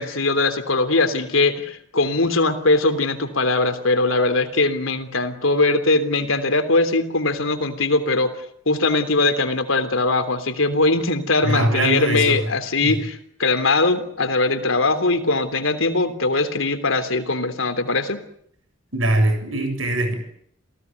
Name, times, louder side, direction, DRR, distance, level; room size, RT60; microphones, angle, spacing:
voice 1, 0.0-8.3 8.6-18.2, left 3 dB, 90° left, 10 dB, 3.3 m, -21 dB
voice 2, 11.4-12.4 12.8-12.9 18.9-20.1, right 1 dB, 80° right, 7 dB, 7.8 m, -21 dB
29.0 x 18.0 x 9.5 m, 0.68 s
head